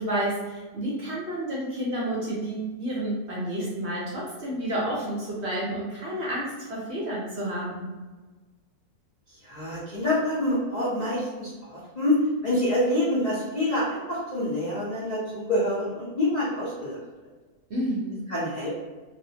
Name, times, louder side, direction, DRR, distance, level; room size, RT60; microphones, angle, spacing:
voice 1, 0.0-7.9 17.7-18.2, right 1 dB, 60° right, -5 dB, 0.7 m, -30 dB
voice 2, 9.3-12.2 12.4-17.0 18.3-18.7, left 1 dB, 75° left, -8 dB, 0.3 m, -27 dB
2.6 x 2.0 x 2.7 m, 1.3 s
omnidirectional pair, 1.6 m